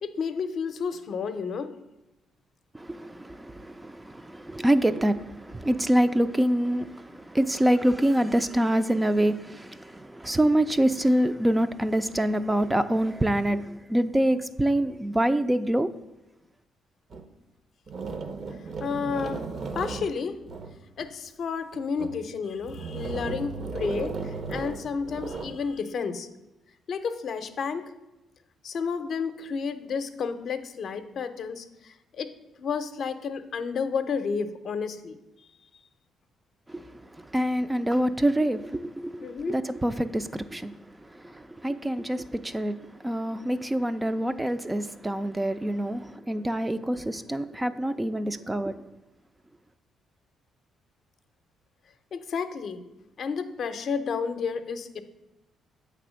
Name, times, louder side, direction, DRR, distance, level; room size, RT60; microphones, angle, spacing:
voice 1, 0.0-1.7 18.8-19.4 19.8-20.4 21.0-26.3 26.9-27.9 28.6-32.3 32.6-35.2 39.2-39.6 52.1-52.8 53.2-55.0, left 5 dB, 60° left, 0.6 m, -31 dB
voice 2, 2.7-15.9 36.7-36.8 37.3-40.7 41.2-42.8 43.0-48.8, right 1 dB, 10° right, 0.3 m, -26 dB
sound 1, 17.1-17.3 17.9-21.1 21.7-22.2 22.6-25.6, right 4 dB, 50° right, 0.7 m, -35 dB
7.9 x 3.4 x 6.2 m
cardioid pair, 90°, 0 cm